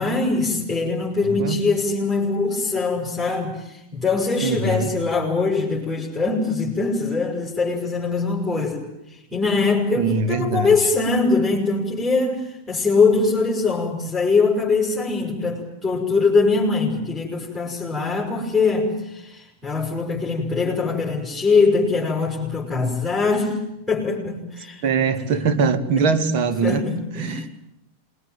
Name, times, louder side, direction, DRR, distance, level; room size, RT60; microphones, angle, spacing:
voice 1, 0.0-8.8 9.1-23.6 23.9-24.8 25.2-25.6 26.0-26.1 26.6-27.4, left 4 dB, ahead, -2 dB, 6.5 m, -22 dB
voice 2, 4.4-4.9 10.0-10.8 24.8-26.8 27.2-27.4, right 5 dB, 45° right, 8 dB, 2.7 m, -22 dB
27.5 x 21.0 x 9.2 m, 0.87 s
figure-of-eight pair, 90°, 0 cm